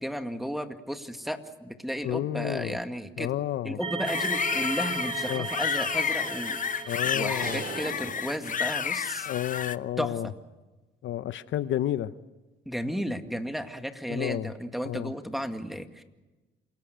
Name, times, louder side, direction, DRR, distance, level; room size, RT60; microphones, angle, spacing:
voice 1, 0.0-3.3 3.6-6.6 7.0-9.3 10.0-10.3 12.7-16.0, equal, ahead, 7 dB, 2.0 m, -34 dB
voice 2, 2.0-2.8 3.2-3.8 5.3-5.5 6.8-7.7 9.2-10.3 11.0-12.1 14.1-14.5 14.8-15.1, left 12 dB, 75° left, 14 dB, 0.8 m, -31 dB
sound 1, 3.8-8.1, right 5 dB, 25° right, 0.8 m, -36 dB
sound 2, 4.1-9.8, left 7 dB, 40° left, 0.8 m, -30 dB
sound 3, 7.4-9.2, right 3 dB, 45° right, 6.5 m, -40 dB
28.0 x 18.0 x 8.0 m, 1.2 s
cardioid pair, 90°, 20 cm